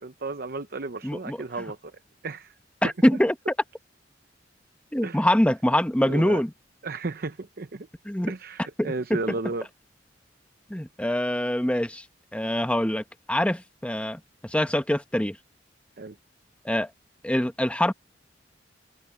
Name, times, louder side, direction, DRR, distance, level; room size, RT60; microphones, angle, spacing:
voice 1, 0.0-1.9 2.2-2.5 5.0-5.3 6.0-6.4 6.8-7.9 8.3-9.7 16.0-16.2, right 3 dB, 55° right, 0.8 m, -33 dB
voice 2, 1.0-1.4 2.8-3.3 4.9-6.5 8.0-8.3 8.8-9.2 10.7-12.0 12.3-15.4 16.6-16.9 17.2-17.9, left 1 dB, 5° left, 1.0 m, -24 dB
head